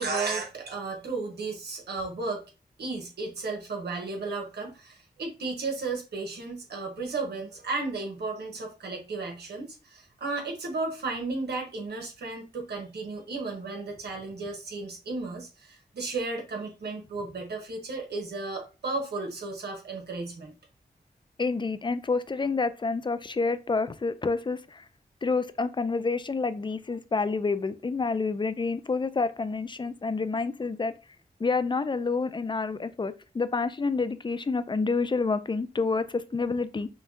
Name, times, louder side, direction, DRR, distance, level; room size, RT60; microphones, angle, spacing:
voice 1, 0.0-2.4 2.8-20.5, right 3 dB, 90° right, 1.2 m, -34 dB
voice 2, 21.4-24.8 25.2-30.9 31.4-36.9, left 4 dB, 30° left, 0.4 m, -28 dB
5.5 x 2.3 x 2.7 m
cardioid pair, 55°, 17 cm